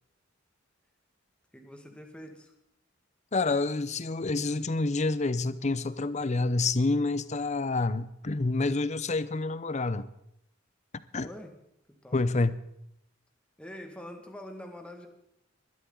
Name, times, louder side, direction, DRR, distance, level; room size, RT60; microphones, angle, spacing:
voice 1, 1.5-2.5 11.2-11.5 11.9-12.2 13.6-15.1, left 1 dB, 5° left, 1.8 m, -45 dB
voice 2, 3.3-10.1 11.1-11.3 12.1-12.6, left 3 dB, 35° left, 0.7 m, -28 dB
21.0 x 12.5 x 3.9 m
head